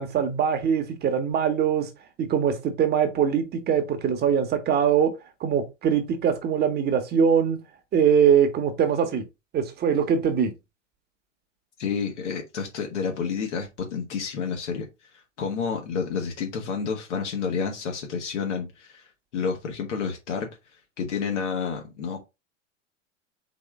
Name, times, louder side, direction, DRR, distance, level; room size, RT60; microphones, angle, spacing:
voice 1, 0.0-1.9 2.2-5.1 5.4-7.6 7.9-9.2 9.5-10.5, right 7 dB, 25° right, 1.0 m, -22 dB
voice 2, 11.8-14.9 15.1-19.1 19.3-20.5 21.0-22.2, left 5 dB, 65° left, 1.4 m, -30 dB
4.2 x 3.5 x 3.5 m
figure-of-eight pair, 95°, 38 cm